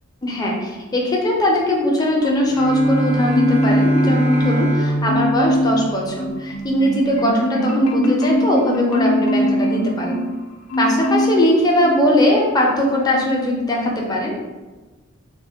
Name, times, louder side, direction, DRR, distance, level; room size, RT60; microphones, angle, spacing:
voice 1, 0.2-10.2 10.8-14.4, left 1 dB, 20° left, -2 dB, 0.4 m, -20 dB
Marimba xylophone, 2.2-3.0 3.3-4.7 5.1-5.8 6.2-10.3 10.7-11.4 11.8-12.0, equal, 80° left, 0.4 m, -21 dB
Bowed string instrument, 2.4-6.6, right 1 dB, 60° right, 0.4 m, -23 dB
2.1 x 2.1 x 3.3 m, 1.2 s
head